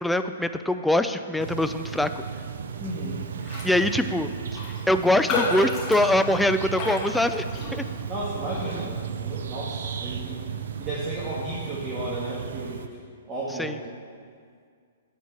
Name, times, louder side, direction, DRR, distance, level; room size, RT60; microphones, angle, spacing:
voice 1, 0.0-2.2 3.6-4.3 4.9-7.4 7.7-7.8 13.6-13.7, left 1 dB, 5° left, 9 dB, 0.3 m, -23 dB
sound 1, 1.4-12.9, right 7 dB, 70° right, 0.5 m, -34 dB
voice 2, 2.8-3.3 8.1-10.5 10.8-12.9 13.3-13.8, right 1 dB, 25° right, -7 dB, 1.6 m, -33 dB
Raindrop, 3.4-3.8 4.0-4.1 4.5-8.1 8.5-8.8, left 3 dB, 20° left, 2.1 m, -31 dB
8.6 x 4.5 x 7.0 m, 2.1 s
hypercardioid pair, 135°, 0 cm